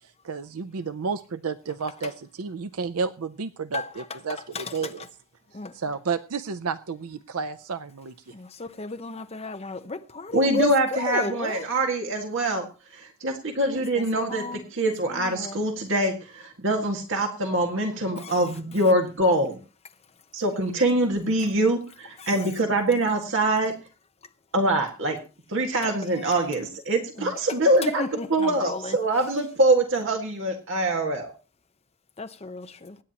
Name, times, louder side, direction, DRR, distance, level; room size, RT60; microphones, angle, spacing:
voice 1, 0.2-5.0 5.7-8.3, right 5 dB, 85° right, 0.6 m, -31 dB
voice 2, 3.7-5.1 5.5-5.8 8.3-11.6 13.7-14.6 15.1-15.6 18.2-18.4 22.2-22.5 25.8-26.4 27.2-29.0 32.2-33.0, left 3 dB, 30° left, 0.9 m, -34 dB
voice 3, 10.3-12.6 12.9-19.6 20.3-23.7 24.5-25.2 25.5-28.0 28.3-31.3, right 1 dB, 60° right, 1.9 m, -24 dB
24.5 x 9.9 x 2.9 m
head